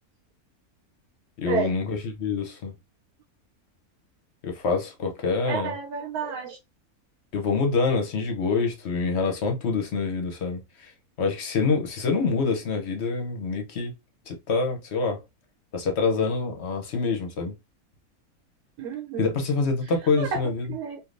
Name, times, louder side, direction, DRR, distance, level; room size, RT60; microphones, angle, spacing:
voice 1, 1.4-2.7 4.4-5.7 7.3-10.9 11.2-13.9 14.3-15.2 15.7-17.5 19.2-20.7, left 4 dB, 55° left, 0.8 m, -26 dB
voice 2, 5.4-6.6 18.8-19.3 20.2-20.4 20.7-21.0, right 6 dB, 90° right, 1.2 m, -30 dB
3.3 x 2.5 x 2.5 m
omnidirectional pair, 1.6 m